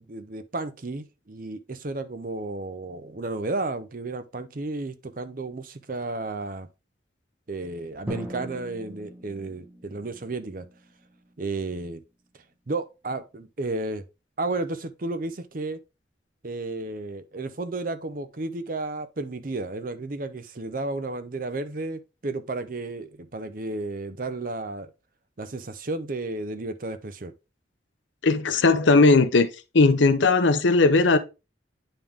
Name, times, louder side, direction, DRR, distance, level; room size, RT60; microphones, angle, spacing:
voice 1, 0.0-6.7 7.5-10.7 11.4-12.0 12.7-14.0 14.4-15.8 16.4-24.9 25.4-27.3, right 2 dB, 45° right, 0.6 m, -32 dB
Drum, 8.1-11.8, equal, 10° right, 1.3 m, -40 dB
voice 2, 28.2-29.5 29.7-31.2, left 3 dB, 80° left, 0.7 m, -18 dB
9.0 x 3.6 x 3.5 m
head